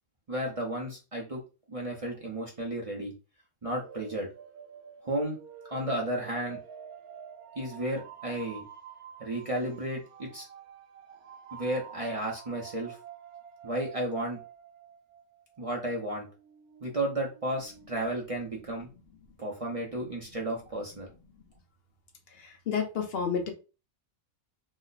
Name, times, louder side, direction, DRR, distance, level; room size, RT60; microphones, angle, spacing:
voice 1, 0.3-1.4 1.7-3.1 3.6-4.3 5.0-5.4 5.7-6.6 7.6-8.6 9.2-10.5 11.5-13.0 13.6-14.4 15.6-16.3 16.8-18.9 19.4-21.1, right 1 dB, 35° right, -1 dB, 0.5 m, -33 dB
sound 1, 3.7-15.6 15.9-18.1, right 8 dB, 90° right, 1.1 m, -49 dB
voice 2, 22.3-23.5, left 6 dB, 55° left, 4 dB, 0.8 m, -31 dB
3.0 x 2.1 x 3.9 m, 0.32 s
omnidirectional pair, 1.5 m